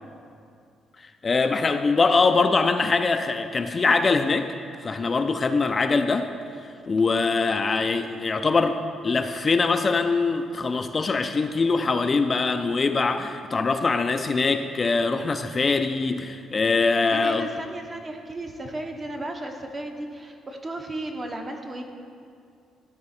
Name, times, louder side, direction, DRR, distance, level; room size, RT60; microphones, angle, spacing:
voice 1, 1.2-4.5 4.8-6.3 6.9-17.5, left 4 dB, 35° left, 8 dB, 0.3 m, -23 dB
voice 2, 17.1-21.8, right 1 dB, 30° right, 3 dB, 0.9 m, -34 dB
12.0 x 4.2 x 4.2 m, 2.4 s
cardioid pair, 90°, 0 cm